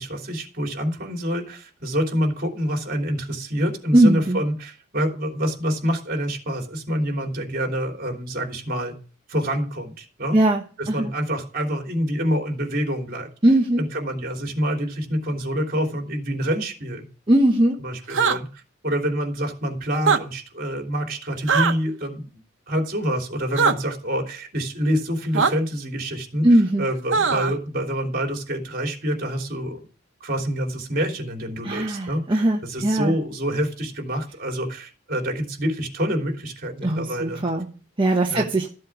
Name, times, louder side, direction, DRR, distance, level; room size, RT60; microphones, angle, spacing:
voice 1, 0.0-8.9 9.3-10.4 10.8-13.3 13.8-17.0 17.8-22.3 22.7-29.8 30.2-37.4 38.3-38.5, equal, 45° right, 2 dB, 3.3 m, -27 dB
voice 2, 3.9-4.4 10.3-10.6 10.9-11.1 13.4-13.8 17.3-17.8 26.4-26.8 31.6-33.1 36.8-37.7 38.0-38.7, right 1 dB, 25° right, 0 dB, 1.1 m, -19 dB
sound 1, 18.1-18.4 19.9-20.2 21.5-21.7 23.6-23.7 25.3-25.5 27.1-27.5, right 5 dB, 70° right, 1.0 m, -19 dB
14.0 x 7.8 x 6.1 m, 0.39 s
head